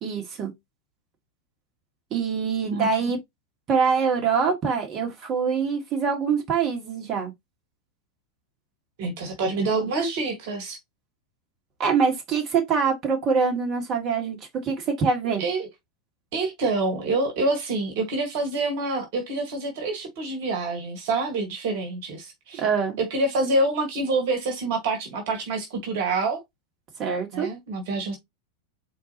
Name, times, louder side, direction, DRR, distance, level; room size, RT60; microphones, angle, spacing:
voice 1, 0.0-0.5 2.1-3.2 3.7-7.3 11.8-14.4 14.6-15.4 22.5-23.0 27.0-27.5, right 5 dB, 30° right, 1.8 m, -24 dB
voice 2, 9.0-10.8 15.4-15.7 16.3-22.6 23.0-26.4 27.3-28.2, right 2 dB, 50° right, 1.7 m, -26 dB
4.4 x 3.8 x 3.0 m
figure-of-eight pair, 90°, 0 cm